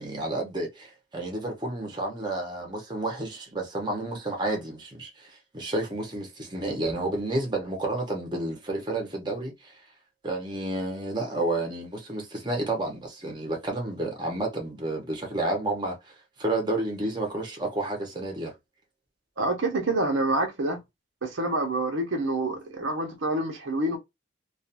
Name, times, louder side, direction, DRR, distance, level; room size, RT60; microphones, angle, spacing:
voice 1, 0.0-9.8 10.2-18.5, right 2 dB, 25° right, 0.8 m, -31 dB
voice 2, 19.4-20.8 21.2-24.0, right 2 dB, 85° right, 0.8 m, -27 dB
2.5 x 2.4 x 2.7 m
head